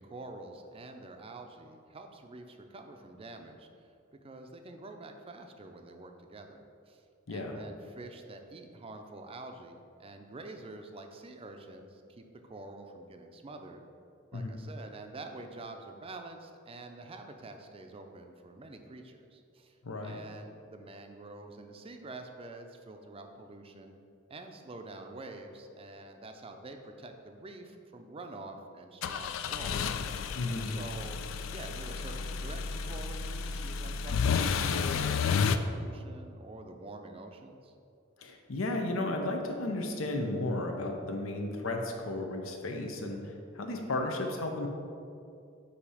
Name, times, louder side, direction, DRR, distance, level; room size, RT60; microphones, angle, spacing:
voice 1, 0.0-3.9 4.2-7.0 7.3-13.8 14.3-23.9 24.3-30.0 30.7-31.2 31.5-37.7, right 2 dB, 30° right, 5 dB, 0.5 m, -47 dB
voice 2, 19.8-20.2 30.3-30.7 38.2-44.7, left 2 dB, 85° left, 3 dB, 0.8 m, -34 dB
sound 1, 29.0-35.6, left 6 dB, 70° left, 0.3 m, -31 dB
8.3 x 2.8 x 4.9 m, 2.5 s
head